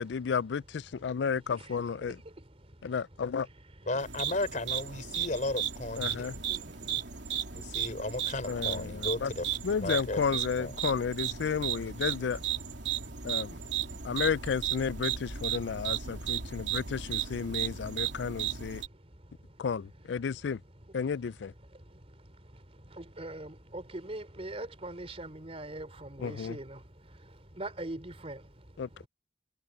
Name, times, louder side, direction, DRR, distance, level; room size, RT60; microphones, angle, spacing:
voice 1, 0.0-2.2 2.8-3.5 6.0-6.4 8.5-9.3 9.6-12.4 13.2-13.6 14.0-18.8 19.6-20.6 20.9-21.5 26.2-26.6 28.8-29.1, left 6 dB, 75° left, 0.4 m, -32 dB
voice 2, 1.6-3.9 5.1-5.3 6.1-8.1 11.7-12.1 12.8-14.2 15.0-19.7 20.1-21.3 21.6-29.1, right 1 dB, 35° right, 3.7 m, -46 dB
voice 3, 3.9-6.3 7.5-9.5 9.8-10.2 10.6-10.8, left 2 dB, 45° left, 3.5 m, -34 dB
sound 1, 4.0-18.9, right 9 dB, 80° right, 3.1 m, -35 dB
head